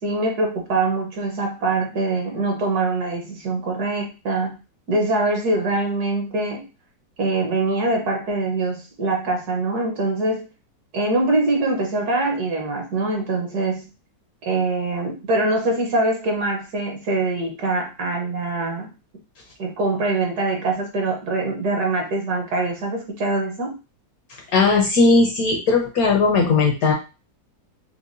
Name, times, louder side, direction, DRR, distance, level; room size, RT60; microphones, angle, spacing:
voice 1, 0.0-4.6 4.9-6.6 7.2-10.5 10.9-13.9 14.4-18.9 19.6-23.7, right 2 dB, 60° right, 1 dB, 1.4 m, -23 dB
voice 2, 24.5-26.9, left 3 dB, 65° left, 1 dB, 1.0 m, -17 dB
4.7 x 2.1 x 2.6 m, 0.30 s
omnidirectional pair, 2.0 m